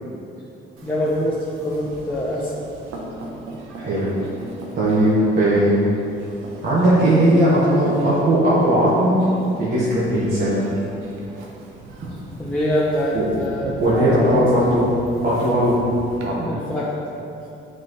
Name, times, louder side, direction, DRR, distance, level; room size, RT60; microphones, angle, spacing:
voice 1, 0.8-2.7 12.4-14.6 16.5-16.9 17.3-17.5, equal, 10° left, -8 dB, 1.0 m, -24 dB
sound 1, 0.8-16.3, right 2 dB, 90° right, 1.0 m, -38 dB
voice 2, 3.8-4.1 4.7-5.8 6.6-9.2 9.6-10.6 13.1-13.2 13.8-14.9 15.2-15.8 16.2-16.5, right 1 dB, 55° right, -9 dB, 1.6 m, -18 dB
8.3 x 5.0 x 3.2 m, 2.7 s
cardioid pair, 90°, 20 cm